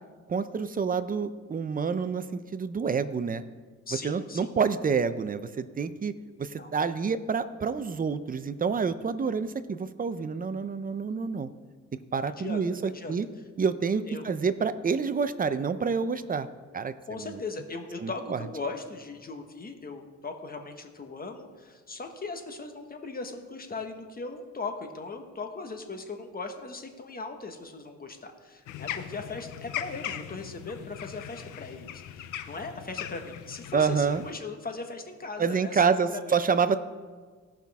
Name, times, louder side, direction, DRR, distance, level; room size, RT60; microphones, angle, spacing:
voice 1, 0.3-2.2 2.5-3.4 4.0-6.1 6.4-11.5 12.1-13.3 13.6-16.5 16.7-17.4 18.0-18.4 33.7-34.2 35.4-36.8, right 5 dB, 30° right, 12 dB, 0.6 m, -28 dB
voice 2, 3.9-4.5 6.6-6.7 12.2-13.1 14.1-14.3 17.1-35.8 36.1-36.4, left 3 dB, 30° left, 5 dB, 1.4 m, -39 dB
sound 1, 28.7-34.3, left 11 dB, 85° left, 0.6 m, -39 dB
17.5 x 5.9 x 3.6 m, 1.5 s
cardioid pair, 90°, 30 cm